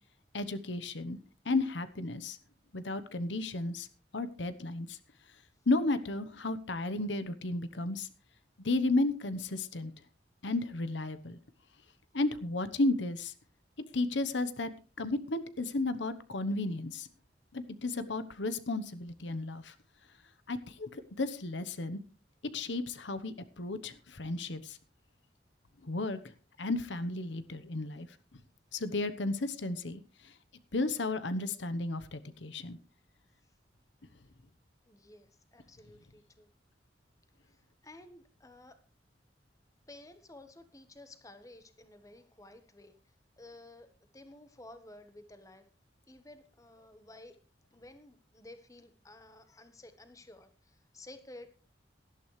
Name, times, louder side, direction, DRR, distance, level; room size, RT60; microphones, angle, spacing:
voice 1, 0.3-1.2 1.4-2.4 2.7-3.9 4.1-5.0 5.7-8.1 8.6-9.9 10.4-11.4 12.1-13.3 13.9-14.7 15.0-17.1 17.5-19.7 20.5-22.0 22.5-24.8 25.8-26.2 26.6-28.1 28.7-30.3 30.7-32.8, left 2 dB, 80° left, 13 dB, 1.0 m, -33 dB
voice 2, 34.9-36.5 37.5-38.8 39.9-42.9 43.4-45.6 46.1-47.4 47.7-51.5, left 1 dB, 20° left, 9 dB, 1.2 m, -53 dB
18.0 x 12.0 x 3.3 m, 0.32 s
head